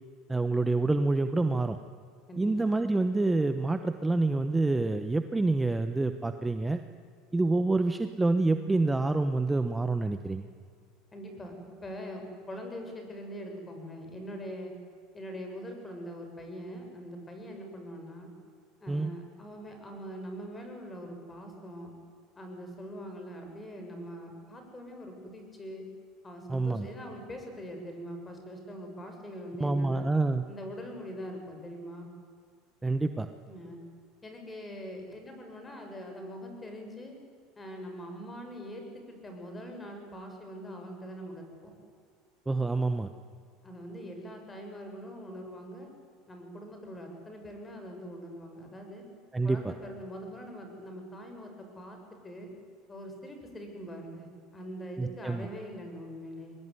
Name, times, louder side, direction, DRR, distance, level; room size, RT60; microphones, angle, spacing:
voice 1, 0.3-1.8 2.4-6.8 7.3-10.5 18.9-19.1 26.5-26.9 29.6-30.4 32.8-33.3 42.5-43.1 49.3-49.7 55.0-55.5, right 2 dB, 10° right, 9 dB, 1.1 m, -27 dB
voice 2, 2.3-2.7 11.1-11.5 11.8-14.7 15.1-18.3 18.8-21.9 22.4-25.9 26.2-30.1 30.5-32.1 33.5-33.8 34.2-37.1 37.6-41.7 43.6-45.9 46.3-49.1 49.4-52.0 52.2-52.5 52.9-54.3 54.5-56.6, equal, 20° left, 4 dB, 7.0 m, -42 dB
23.0 x 20.0 x 9.8 m, 2.1 s
supercardioid pair, 105°, 0 cm